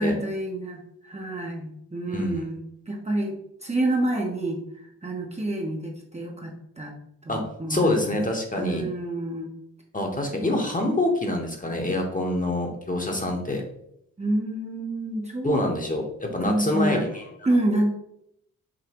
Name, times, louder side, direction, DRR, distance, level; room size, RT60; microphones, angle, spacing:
voice 1, 0.0-2.6 2.9-3.4 3.6-6.9 7.2-8.1 8.6-9.5 14.2-15.6 16.4-17.1 17.4-17.9, right 1 dB, 20° right, 0 dB, 0.8 m, -28 dB
voice 2, 7.7-8.8 9.9-13.6 15.4-17.2, left 1 dB, 25° left, 2 dB, 1.0 m, -26 dB
5.1 x 2.8 x 2.9 m, 0.74 s
cardioid pair, 60°, 35 cm